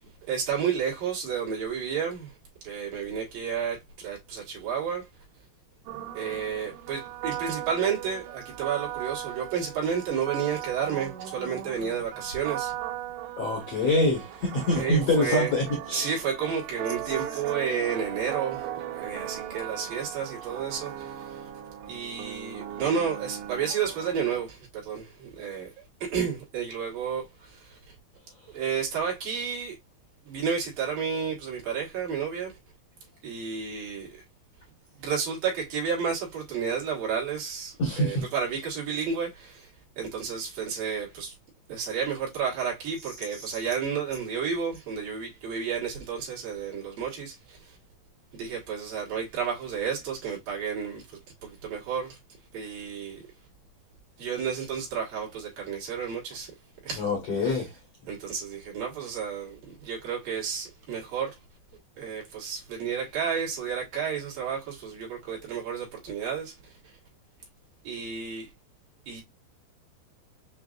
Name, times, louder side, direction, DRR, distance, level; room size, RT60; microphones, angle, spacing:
voice 1, 0.3-2.3 2.6-5.1 6.1-12.7 14.7-15.5 15.9-18.7 18.9-21.4 21.9-27.9 28.5-29.8 30.3-32.5 33.2-34.2 35.0-39.7 40.0-41.4 41.7-47.8 48.3-52.2 52.5-53.2 54.2-56.5 56.8-57.1 57.3-57.6 58.1-61.4 62.0-66.7 67.8-68.5 69.1-69.2, right 7 dB, 60° right, 2.9 m, -31 dB
sound 1, 5.9-24.4, right 11 dB, 80° right, 2.7 m, -38 dB
voice 2, 13.4-16.1 37.8-38.2 57.0-57.7, left 1 dB, 80° left, 1.4 m, -25 dB
7.3 x 2.6 x 2.4 m
omnidirectional pair, 5.2 m